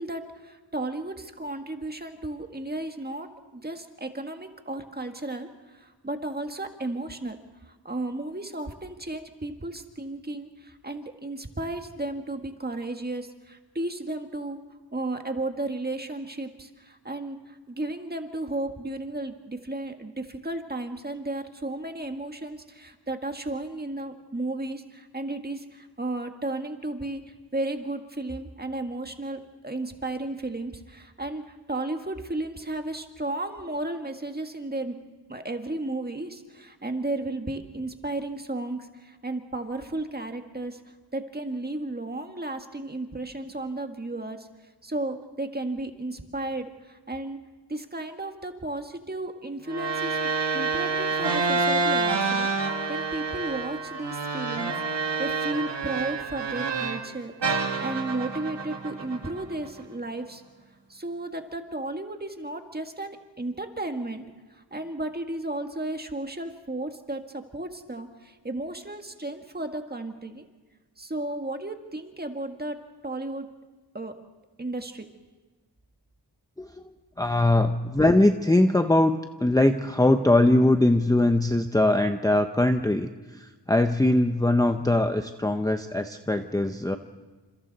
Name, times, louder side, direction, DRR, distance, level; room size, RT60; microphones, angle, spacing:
voice 1, 0.0-7.4 7.7-14.6 14.9-27.2 27.5-35.0 35.3-40.8 41.1-44.5 44.8-47.4 47.7-50.2 50.5-54.8 55.2-60.4 60.9-64.2 64.5-70.4 71.0-72.8 73.0-73.5 73.9-74.1 74.6-75.1, right 2 dB, 20° right, 5 dB, 1.8 m, -34 dB
sound 1, 49.7-57.1 57.4-59.8, right 4 dB, 75° right, 2.0 m, -28 dB
voice 2, 77.2-87.0, left 1 dB, 10° left, 6 dB, 0.8 m, -21 dB
29.0 x 27.0 x 4.1 m, 1.3 s
wide cardioid pair, 100°, 43 cm